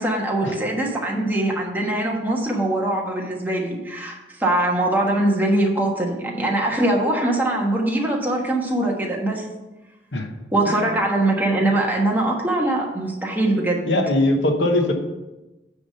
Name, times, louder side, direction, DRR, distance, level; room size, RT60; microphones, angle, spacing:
voice 1, 0.0-9.4 10.5-13.9, right 1 dB, 10° right, -1 dB, 1.3 m, -22 dB
voice 2, 13.9-14.9, left 1 dB, 85° left, 4 dB, 1.1 m, -20 dB
9.6 x 3.6 x 6.6 m, 1.1 s
head